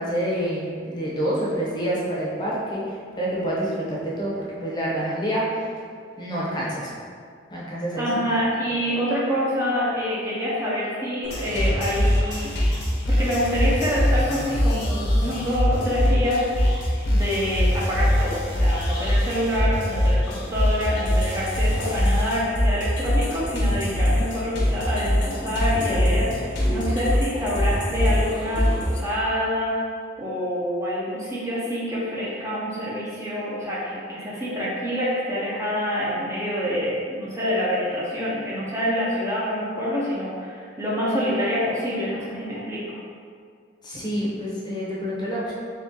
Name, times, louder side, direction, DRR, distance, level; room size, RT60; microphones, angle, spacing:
voice 1, 0.0-5.4 6.2-6.9 7.5-8.4 43.8-45.5, equal, 20° left, -6 dB, 0.7 m, -27 dB
voice 2, 8.0-12.5 13.1-29.8 30.2-43.0, equal, 15° right, -7 dB, 0.5 m, -26 dB
sound 1, 11.2-29.0, equal, 60° left, 0.7 m, -23 dB
3.4 x 2.8 x 3.6 m, 2.2 s
head